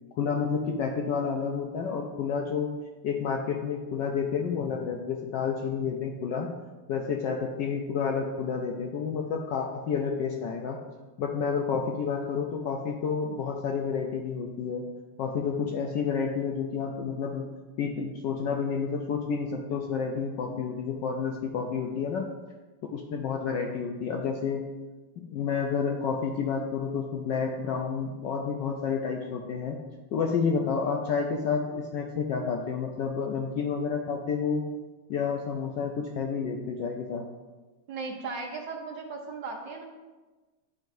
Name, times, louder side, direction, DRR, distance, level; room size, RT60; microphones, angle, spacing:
voice 1, 0.2-2.7 3.0-6.5 6.9-10.8 11.2-14.8 15.2-17.5 17.8-22.3 22.8-24.6 25.2-29.8 30.1-34.6 35.1-37.3, left 6 dB, 75° left, 1 dB, 1.0 m, -30 dB
voice 2, 37.9-39.8, right 4 dB, 65° right, 2 dB, 1.3 m, -37 dB
10.5 x 4.6 x 2.6 m, 1.2 s
omnidirectional pair, 2.4 m